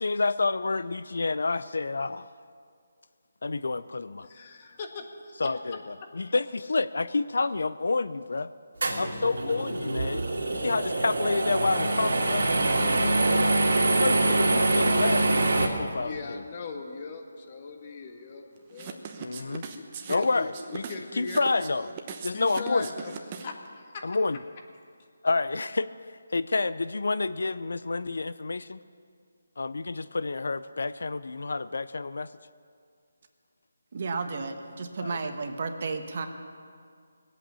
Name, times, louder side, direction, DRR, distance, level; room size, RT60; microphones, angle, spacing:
voice 1, 0.0-2.3 3.4-4.3 5.4-8.5 9.0-12.4 13.9-16.4 19.2-19.6 20.1-20.8 21.2-21.9 22.2-22.9 24.0-24.4 25.2-25.9 26.3-28.8 29.6-32.3 35.0-35.2, left 3 dB, 75° left, 15 dB, 0.5 m, -29 dB
voice 2, 4.2-5.3 15.9-19.0 19.7-21.4 22.3-24.1, left 4 dB, 35° left, 3 dB, 1.5 m, -40 dB
sound 1, 8.8-15.7, right 2 dB, 70° right, 2.6 m, -24 dB
sound 2, 18.7-23.7, right 6 dB, 30° right, 1.0 m, -39 dB
voice 3, 33.9-36.3, right 4 dB, 50° right, 6 dB, 1.3 m, -32 dB
20.0 x 8.4 x 6.9 m, 2.2 s
figure-of-eight pair, 160°, 0 cm